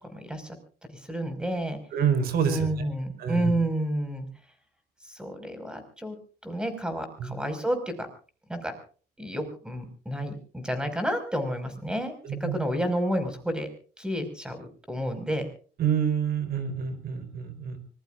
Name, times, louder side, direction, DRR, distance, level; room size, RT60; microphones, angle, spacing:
voice 1, 0.1-0.6 0.9-1.8 2.4-4.3 5.0-6.2 6.4-7.9 8.5-8.8 9.2-12.1 12.4-13.7 14.0-15.5, right 1 dB, 5° right, 8 dB, 5.4 m, -30 dB
voice 2, 1.9-2.9 3.2-3.5 7.2-7.3 12.2-12.6 15.8-17.8, right 7 dB, 65° right, 10 dB, 4.7 m, -27 dB
25.0 x 21.5 x 2.5 m, 0.41 s
cardioid pair, 110°, 17 cm